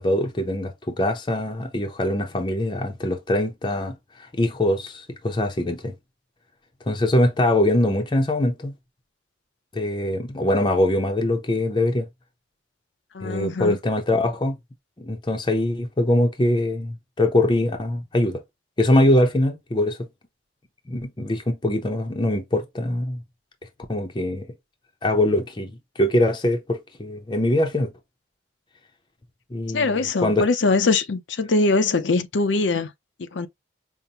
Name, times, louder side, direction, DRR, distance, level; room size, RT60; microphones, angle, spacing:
voice 1, 0.0-4.0 4.4-5.9 6.9-8.7 9.7-12.1 13.2-14.6 15.0-18.4 18.8-20.0 20.9-23.2 23.9-24.5 25.0-25.7 26.0-27.9 29.5-30.5, left 1 dB, 25° left, 0.6 m, -22 dB
voice 2, 13.1-13.8 29.7-32.9 33.3-33.5, left 3 dB, 85° left, 0.6 m, -22 dB
5.3 x 2.1 x 2.8 m
head